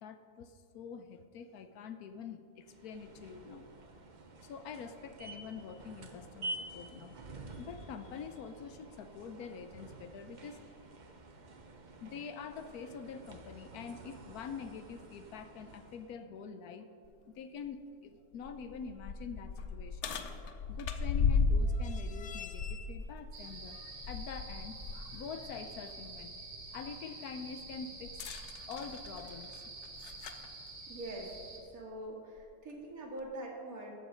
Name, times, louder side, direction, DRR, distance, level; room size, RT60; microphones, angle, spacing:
voice 1, 0.0-3.7 4.4-7.2 7.5-10.6 12.0-16.9 17.2-20.1 20.7-26.4 26.7-29.6, left 6 dB, 75° left, 10 dB, 1.1 m, -46 dB
sound 1, 2.6-16.2, right 2 dB, 40° right, 0.7 m, -49 dB
sound 2, 17.0-17.1 17.6-17.7 18.3-25.0 25.4-25.6 28.0-30.5 31.5-31.6 32.4-32.5, left 4 dB, 60° left, 0.8 m, -35 dB
sound 3, 23.3-31.6, right 3 dB, 80° right, 2.1 m, -48 dB
voice 2, 30.9-31.3 31.7-33.9, right 1 dB, 60° right, -2 dB, 2.3 m, -43 dB
14.0 x 7.2 x 5.1 m, 2.3 s
omnidirectional pair, 1.7 m